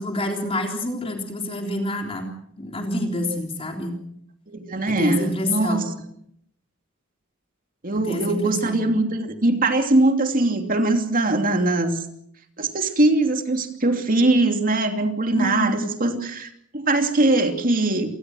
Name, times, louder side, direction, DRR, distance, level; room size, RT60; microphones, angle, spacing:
voice 1, 0.0-2.3 2.6-4.0 4.9-5.9 7.9-8.8 15.3-15.8, left 1 dB, 25° left, 2 dB, 3.6 m, -27 dB
voice 2, 4.5-5.8 7.8-12.0 12.6-18.1, right 2 dB, 40° right, 5 dB, 2.8 m, -21 dB
28.0 x 19.5 x 6.4 m, 0.71 s
head